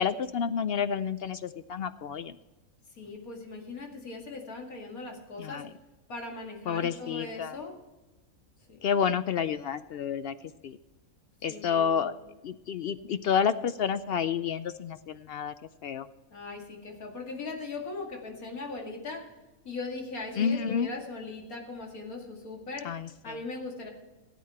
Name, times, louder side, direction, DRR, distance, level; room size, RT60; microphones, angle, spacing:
voice 1, 0.0-2.4 5.4-5.7 6.7-7.6 8.8-10.3 10.6-10.8 11.4-12.1 12.4-15.5 15.8-16.1 20.4-20.9 22.8-23.4, left 7 dB, 70° left, 13 dB, 0.5 m, -29 dB
voice 2, 2.9-5.7 6.1-7.8 8.7-8.8 11.5-12.1 16.3-19.3 19.6-22.9 23.2-23.9, left 3 dB, 90° left, 1 dB, 2.7 m, -39 dB
16.5 x 8.6 x 4.3 m, 1.1 s
omnidirectional pair, 1.5 m